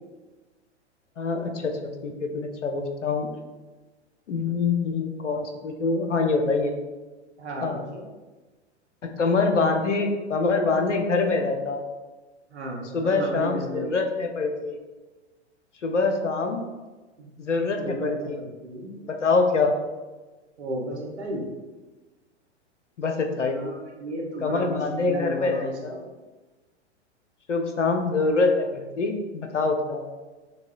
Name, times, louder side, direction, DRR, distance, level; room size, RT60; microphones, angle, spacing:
voice 1, 1.2-1.7 2.0-3.3 4.3-6.7 7.6-7.8 9.0-11.8 12.9-14.8 15.8-16.6 17.4-18.4 19.0-19.8 23.0-23.6 24.4-26.0 27.5-30.0, left 3 dB, 85° left, 4 dB, 0.6 m, -25 dB
voice 2, 7.4-8.0 12.5-13.9 17.2-17.3 17.8-18.9 20.6-21.4 23.4-26.0, right 1 dB, 70° right, -1 dB, 0.9 m, -34 dB
5.9 x 2.2 x 2.3 m, 1.2 s
figure-of-eight pair, 100°, 35 cm